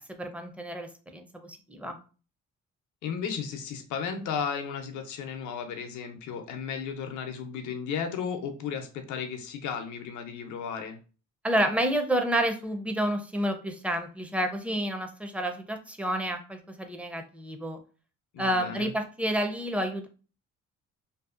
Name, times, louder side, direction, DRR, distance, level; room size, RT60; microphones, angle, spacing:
voice 1, 0.0-2.0 11.4-17.8 18.4-20.1, right 1 dB, 5° right, 5 dB, 0.4 m, -29 dB
voice 2, 3.0-11.0 18.3-18.9, left 6 dB, 75° left, 6 dB, 0.6 m, -34 dB
2.6 x 2.4 x 2.4 m, 0.36 s
cardioid pair, 90°, 30 cm